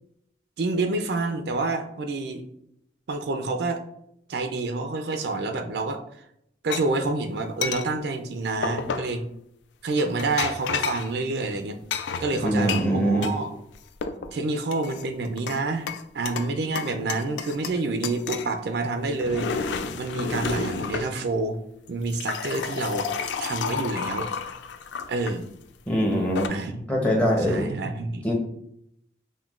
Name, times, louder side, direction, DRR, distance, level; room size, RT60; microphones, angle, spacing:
voice 1, 0.6-2.4 3.1-3.8 4.3-6.0 6.6-9.2 9.8-11.8 12.2-13.5 14.3-15.9 16.1-21.6 21.9-23.1 23.4-24.3 25.1-25.5 26.5-26.8 27.4-28.2, right 3 dB, 65° right, 6 dB, 0.4 m, -28 dB
sound 1, 6.7-6.8 7.6-7.9 8.6-9.1 10.0-11.1 11.9-13.4 13.7-14.3 14.7-15.6 15.9-16.5 16.8-17.8 18.0-18.5 19.0-21.1 21.9-25.3 26.1-26.5, left 6 dB, 75° left, 0.3 m, -31 dB
voice 2, 12.4-13.3 25.9-26.5 26.9-27.7 28.2-28.3, equal, 10° left, -1 dB, 0.7 m, -23 dB
5.8 x 2.2 x 2.4 m, 0.75 s
head